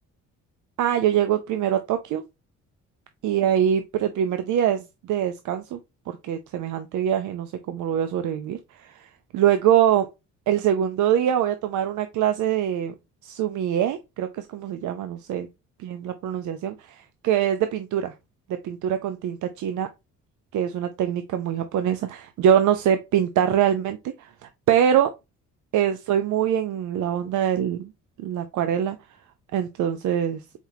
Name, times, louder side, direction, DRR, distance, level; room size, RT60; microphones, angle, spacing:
voice 1, 0.8-2.2 3.2-5.8 6.1-10.1 10.5-12.9 13.2-15.5 15.8-18.1 18.5-19.9 20.5-24.3 24.7-25.1 25.7-27.9 28.2-29.0 29.5-30.4, right 9 dB, 75° right, 0.6 m, -24 dB
4.4 x 4.0 x 2.7 m
cardioid pair, 90°, 30 cm